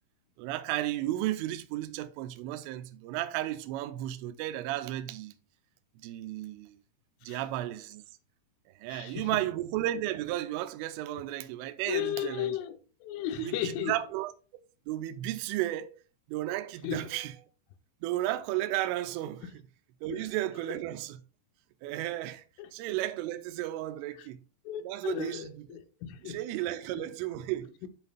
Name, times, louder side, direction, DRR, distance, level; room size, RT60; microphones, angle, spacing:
voice 1, 0.4-5.3 6.0-6.8 7.2-8.0 8.8-12.6 13.4-14.3 14.9-15.9 16.3-17.3 18.0-19.5 20.0-21.2 21.8-22.4 22.7-24.4 24.8-25.7 26.2-27.7, right 14 dB, 85° right, 3.1 m, -33 dB
voice 2, 8.9-9.4 11.9-14.0 16.8-17.1 19.4-19.5 20.1-20.3 21.9-22.0 22.6-22.7 24.2-24.3 24.7-26.4 27.0-27.1 27.8-27.9, left 11 dB, 85° left, 3.3 m, -35 dB
12.0 x 5.4 x 2.3 m
omnidirectional pair, 5.7 m